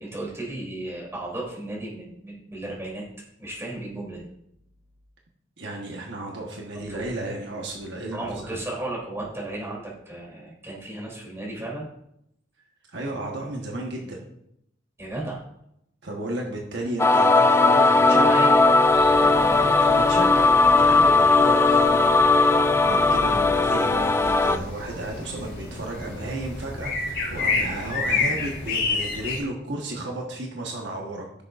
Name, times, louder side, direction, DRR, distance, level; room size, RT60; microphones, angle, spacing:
voice 1, 0.0-3.0 3.4-4.2 6.7-7.0 8.1-11.8 15.0-15.4 18.1-18.6 19.2-19.7, right 2 dB, 15° right, -4 dB, 3.1 m, -34 dB
voice 2, 5.6-8.6 12.9-14.2 16.0-18.5 19.5-22.1 22.4-22.5 22.8-31.3, right 1 dB, 65° right, 0 dB, 1.3 m, -33 dB
sound 1, 17.0-24.6, left 3 dB, 15° left, 0.3 m, -18 dB
sound 2, 18.9-29.4, left 3 dB, 50° left, 3.8 m, -31 dB
15.0 x 6.6 x 2.5 m, 0.76 s
head